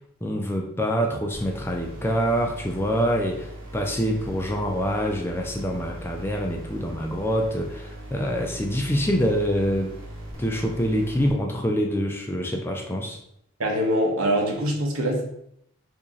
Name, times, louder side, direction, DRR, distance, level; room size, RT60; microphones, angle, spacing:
voice 1, 0.2-9.9 10.4-13.2, equal, 10° left, 2 dB, 0.3 m, -25 dB
sound 1, 1.3-11.3, right 1 dB, 70° right, 1.3 m, -39 dB
voice 2, 13.6-15.2, equal, 90° right, 0 dB, 0.8 m, -23 dB
2.9 x 2.7 x 3.7 m, 0.73 s
head